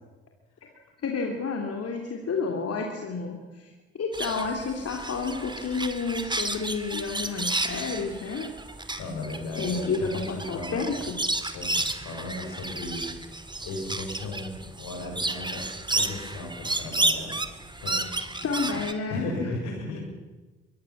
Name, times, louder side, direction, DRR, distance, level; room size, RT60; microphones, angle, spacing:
voice 1, 1.0-8.5 9.6-11.2 18.4-19.2, left 4 dB, 50° left, 2 dB, 3.1 m, -30 dB
sound 1, 4.1-18.9, right 2 dB, 15° right, 2.3 m, -32 dB
voice 2, 9.0-10.9 11.5-13.1 13.6-15.7 15.9-17.4 17.8-18.1 18.7-18.8 19.1-20.0, left 2 dB, 70° left, 2 dB, 6.7 m, -36 dB
23.5 x 20.0 x 7.4 m, 1.2 s
hypercardioid pair, 45°, 31 cm